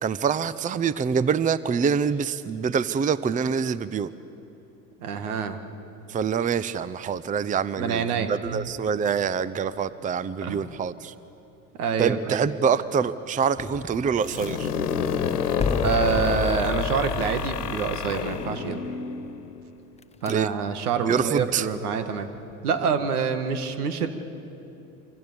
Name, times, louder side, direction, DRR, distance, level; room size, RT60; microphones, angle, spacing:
voice 1, 0.0-4.1 6.1-11.1 12.0-14.7 20.3-20.5 21.1-21.7, right 6 dB, 15° right, 17 dB, 0.7 m, -25 dB
voice 2, 5.0-5.6 7.8-8.6 10.4-10.6 11.8-12.4 15.8-18.9 20.2-22.3 22.6-24.1, right 6 dB, 75° right, 9 dB, 2.0 m, -26 dB
sound 1, 13.6-14.9 15.6-18.9 20.0-20.3, left 4 dB, 15° left, 1.0 m, -32 dB
sound 2, 14.2-19.9, left 7 dB, 85° left, 1.4 m, -29 dB
26.5 x 25.5 x 7.0 m, 2.9 s
hypercardioid pair, 75°, 45 cm